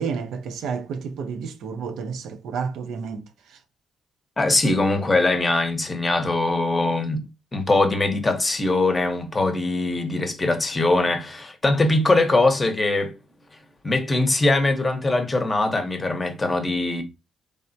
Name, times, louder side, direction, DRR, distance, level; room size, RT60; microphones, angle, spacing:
voice 1, 0.0-3.3, right 6 dB, 80° right, 0.4 m, -30 dB
voice 2, 4.4-7.2 7.5-13.1 13.8-17.0, left 2 dB, 25° left, 0.7 m, -22 dB
3.2 x 2.1 x 2.6 m
cardioid pair, 90°, 0 cm